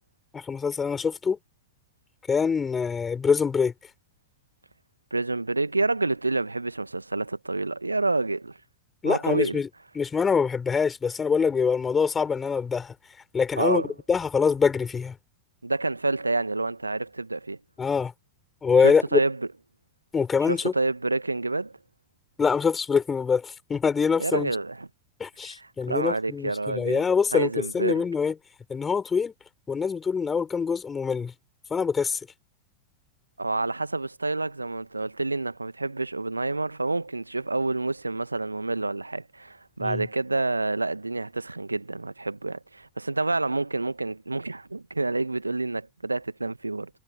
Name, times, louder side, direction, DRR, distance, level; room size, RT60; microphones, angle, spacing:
voice 1, 0.3-1.4 2.3-3.7 9.0-9.7 10.0-12.9 13.3-13.8 14.1-15.2 17.8-18.1 18.6-19.2 20.1-20.7 22.4-24.5 25.2-28.3 28.7-29.3 29.7-31.3 31.7-32.2 39.8-40.0, left 5 dB, 15° left, 7.2 m, -24 dB
voice 2, 5.1-8.6 9.0-9.6 13.6-13.9 15.6-17.6 18.8-19.5 20.4-21.7 24.2-24.9 25.4-27.0 27.3-28.0 33.4-46.9, right 2 dB, 80° right, 1.7 m, -28 dB
figure-of-eight pair, 90°, 0 cm